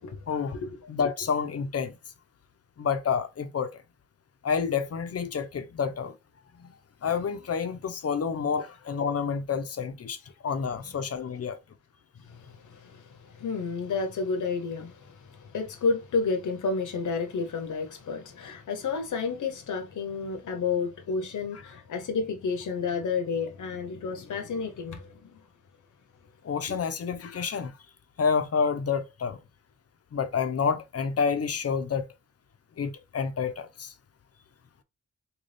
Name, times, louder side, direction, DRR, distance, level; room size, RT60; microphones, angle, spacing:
voice 1, 0.3-0.6 0.9-2.0 2.8-3.8 4.4-6.2 6.6-6.7 7.0-11.6 26.4-27.7 28.2-29.4 30.1-32.1 32.8-33.9, left 6 dB, 50° left, 0.6 m, -29 dB
voice 2, 12.2-25.4 26.7-26.8, left 4 dB, 75° left, 0.8 m, -31 dB
4.0 x 2.3 x 3.2 m
wide cardioid pair, 140°, 31 cm